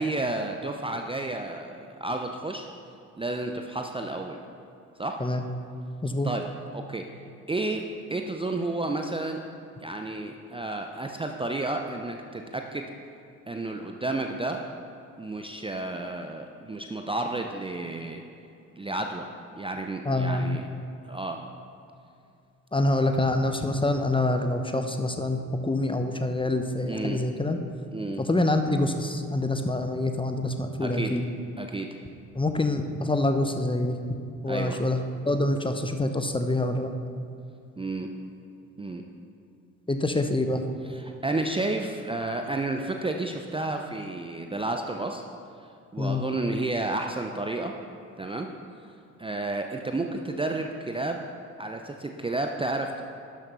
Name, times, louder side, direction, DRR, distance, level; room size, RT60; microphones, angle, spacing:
voice 1, 0.0-2.7 3.2-4.4 5.0-5.2 6.2-6.4 6.7-7.1 7.5-9.4 9.8-12.9 13.5-14.6 15.2-18.2 18.8-20.6 21.1-21.4 26.9-27.2 27.9-28.2 30.8-31.1 31.6-31.9 34.5-34.8 37.8-38.1 38.8-39.0 40.9-45.2 45.9-47.7 48.2-48.5 49.2-51.3 51.6-53.0, right 2 dB, 15° right, 4 dB, 0.7 m, -31 dB
voice 2, 20.0-20.5 22.7-27.6 28.2-31.3 32.3-34.0 34.4-36.9 39.9-40.6 46.0-46.2, left 2 dB, 10° left, 7 dB, 0.9 m, -26 dB
12.0 x 7.0 x 5.6 m, 2.6 s
figure-of-eight pair, 45°, 42 cm